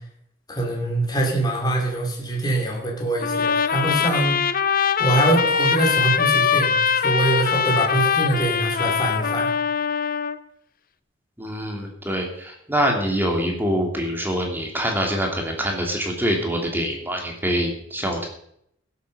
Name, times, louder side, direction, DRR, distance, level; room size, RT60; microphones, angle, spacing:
voice 1, 0.5-4.4 5.0-9.5, right 2 dB, 20° left, -1 dB, 3.4 m, -24 dB
Trumpet, 3.2-10.4, left 6 dB, 50° left, 0.8 m, -22 dB
voice 2, 11.4-18.3, equal, 10° right, 1 dB, 2.8 m, -25 dB
16.5 x 8.2 x 6.6 m, 0.70 s
head